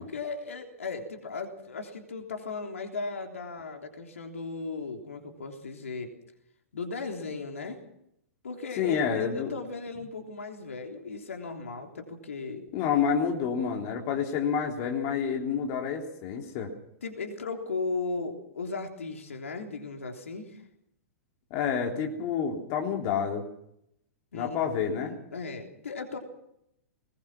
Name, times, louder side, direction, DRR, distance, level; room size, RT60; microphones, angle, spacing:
voice 1, 0.0-6.1 6.7-7.8 8.4-12.7 17.0-20.6 24.3-24.7 25.0-26.2, left 4 dB, 70° left, 3 dB, 3.4 m, -36 dB
voice 2, 8.8-9.5 12.7-16.7 21.5-23.5 24.3-25.2, left 7 dB, 40° left, 2 dB, 3.4 m, -28 dB
21.0 x 20.5 x 6.1 m, 0.76 s
figure-of-eight pair, 105°, 8 cm